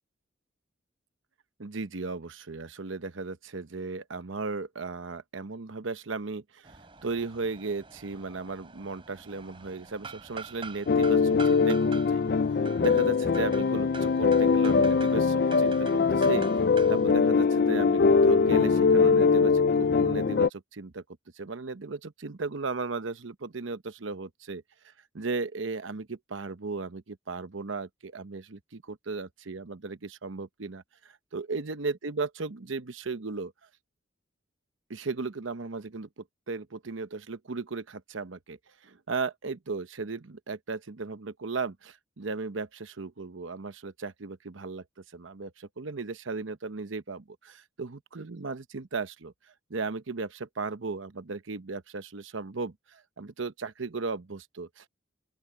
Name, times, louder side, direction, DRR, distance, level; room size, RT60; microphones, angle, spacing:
voice 1, 1.6-6.7 7.0-12.2 12.8-16.5 16.9-21.0 21.4-24.6 25.1-30.8 31.3-33.5 34.9-38.6 38.8-44.8 45.1-49.3 49.7-54.9, right 4 dB, 80° right, 0.9 m, -36 dB
sound 1, 6.6-17.1, right 5 dB, 25° right, 3.1 m, -46 dB
sound 2, 10.9-20.5, left 5 dB, 50° left, 0.4 m, -22 dB
open air
head